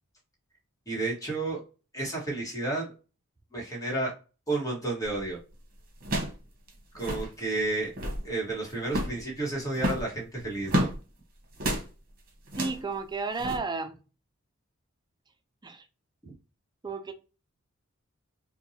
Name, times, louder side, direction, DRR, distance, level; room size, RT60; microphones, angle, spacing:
voice 1, 0.9-1.6 1.9-2.9 3.5-4.1 4.5-5.4 6.9-7.9 8.2-10.9 16.2-16.3, right 2 dB, 15° left, -2 dB, 1.4 m, -31 dB
sound 1, 5.0-5.3 6.0-6.4 6.7-6.8 6.9-7.3 7.8-8.3 8.9-9.2 9.7-11.0 11.6-11.9 12.5-12.8 13.4-13.6, equal, 45° right, 1.1 m, -30 dB
voice 2, 12.6-14.0 15.6-15.9 16.8-17.1, right 4 dB, 20° right, 7 dB, 0.4 m, -32 dB
4.5 x 2.2 x 2.8 m, 0.33 s
head